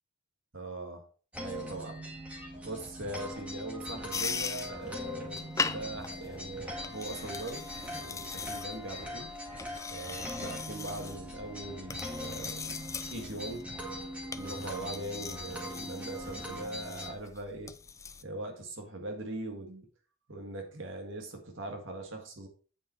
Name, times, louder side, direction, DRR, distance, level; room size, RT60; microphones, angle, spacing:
voice 1, 0.5-1.1 1.4-2.0 2.6-9.3 9.9-12.8 13.1-13.7 14.3-17.7 18.2-19.9 20.3-22.5, right 2 dB, 70° right, 1.8 m, -41 dB
sound 1, 1.3-17.1, equal, 5° right, 1.8 m, -41 dB
sound 2, 4.1-18.2, left 5 dB, 15° left, 0.4 m, -40 dB
8.6 x 5.4 x 4.5 m
head